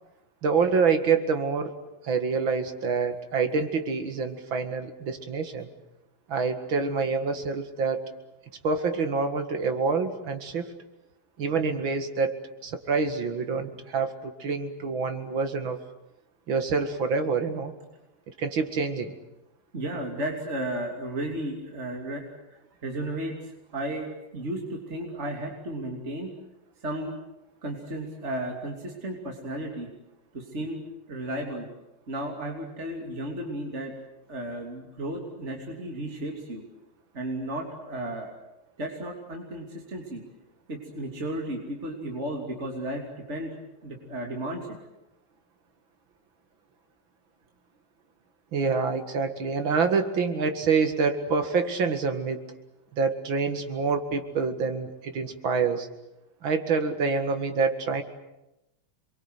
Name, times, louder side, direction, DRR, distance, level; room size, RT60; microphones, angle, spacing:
voice 1, 0.4-1.8 2.0-5.7 6.3-8.1 8.6-10.7 11.4-12.3 12.6-15.8 16.5-17.7 18.4-19.1 48.5-52.4 52.9-55.9 56.4-58.0, right 5 dB, 75° right, 7 dB, 2.7 m, -26 dB
voice 2, 19.7-23.3 23.7-26.3 26.8-27.1 27.6-29.9 30.3-30.8 31.1-31.7 32.1-33.9 34.3-36.6 37.1-38.3 38.8-40.2 40.7-43.6 43.8-44.7, right 1 dB, 35° right, 1 dB, 3.3 m, -34 dB
28.0 x 22.5 x 8.1 m, 0.92 s
omnidirectional pair, 2.2 m